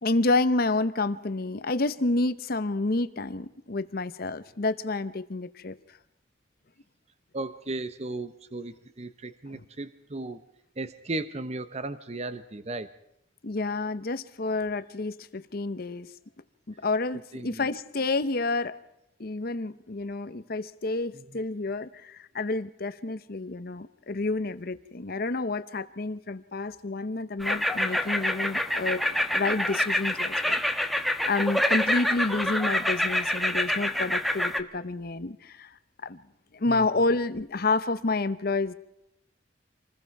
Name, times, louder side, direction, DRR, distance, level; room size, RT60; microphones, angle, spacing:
voice 1, 0.0-5.8 13.4-16.1 16.7-18.8 19.2-29.1 29.3-30.6 30.9-35.8 36.0-36.2 36.5-38.7, left 3 dB, 50° left, 13 dB, 0.8 m, -29 dB
voice 2, 7.3-10.4 10.8-13.0 17.3-17.7 21.1-21.4 36.7-36.9, right 2 dB, 35° right, 12 dB, 0.8 m, -36 dB
sound 1, 27.4-34.6, left 1 dB, ahead, 1.2 m, -27 dB
27.0 x 20.5 x 4.7 m, 0.81 s
head